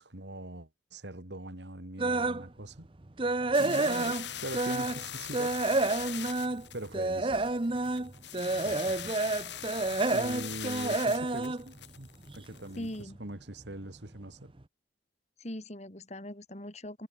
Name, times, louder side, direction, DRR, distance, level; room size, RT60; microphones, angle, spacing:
voice 1, 0.0-2.9 3.5-5.6 6.7-7.5 8.6-9.1 10.1-14.5, right 1 dB, 70° right, 2.9 m, -42 dB
sound 1, 2.0-2.5 2.9-5.1 5.3-12.6 12.9-13.2 13.7-13.8 14.1-14.2, right 2 dB, 30° right, 0.8 m, -29 dB
sound 2, 3.5-13.0, left 10 dB, 75° left, 3.2 m, -41 dB
voice 2, 12.8-13.2 15.4-17.1, left 1 dB, 35° left, 2.9 m, -40 dB
head